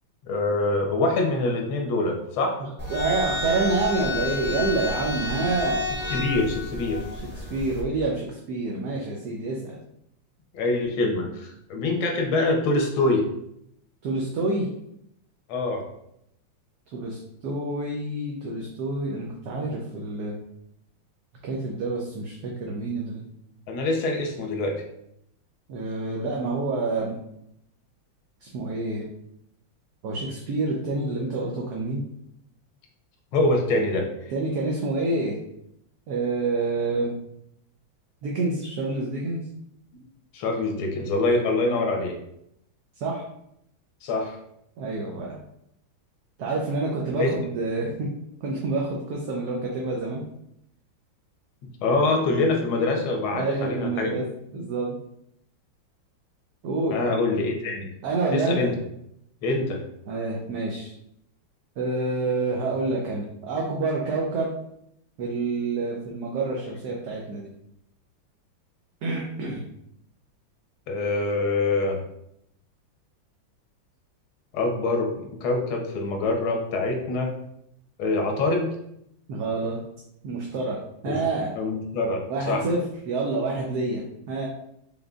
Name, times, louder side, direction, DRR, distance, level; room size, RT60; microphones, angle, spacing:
voice 1, 0.2-2.6 6.1-7.0 10.5-13.2 15.5-15.8 23.7-24.7 33.3-34.0 40.3-42.2 44.0-44.4 47.2-47.3 51.8-54.1 56.9-57.9 58.3-58.7 59.4-59.8 70.9-72.0 74.5-77.3 78.0-78.7 81.1-81.2 81.6-82.7, left 2 dB, 85° left, 2 dB, 1.7 m, -24 dB
sound 1, 2.8-7.8, left 2 dB, 10° right, 0.8 m, -30 dB
voice 2, 2.9-5.8 7.1-9.8 14.0-14.7 16.9-20.4 21.4-23.3 25.7-27.1 28.4-29.0 30.0-32.0 34.3-35.4 36.1-37.1 38.2-39.5 43.0-43.2 44.8-45.4 46.4-48.1 48.4-50.2 53.3-54.2 54.5-55.0 56.6-57.0 58.0-58.7 60.1-60.9 61.8-64.5 65.2-67.5 69.0-69.7 79.3-79.8 80.2-80.8 81.0-81.5 82.3-84.5, right 3 dB, 65° right, -1 dB, 1.0 m, -28 dB
5.2 x 3.7 x 2.3 m, 0.77 s
omnidirectional pair, 2.2 m